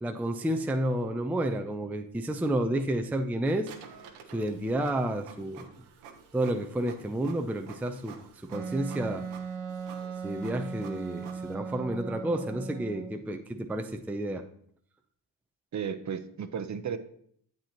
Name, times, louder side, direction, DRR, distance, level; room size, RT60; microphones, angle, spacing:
voice 1, 0.0-3.7 4.3-5.9 6.3-9.3 10.2-14.4, right 1 dB, 5° right, 0.5 m, -31 dB
Printer, 3.6-11.5, right 6 dB, 85° right, 1.1 m, -51 dB
Wind instrument woodwind instrument, 8.5-13.2, right 5 dB, 60° right, 1.1 m, -38 dB
voice 2, 15.7-17.0, right 7 dB, 35° right, 0.8 m, -34 dB
8.9 x 7.6 x 2.9 m
supercardioid pair, 65°, 47 cm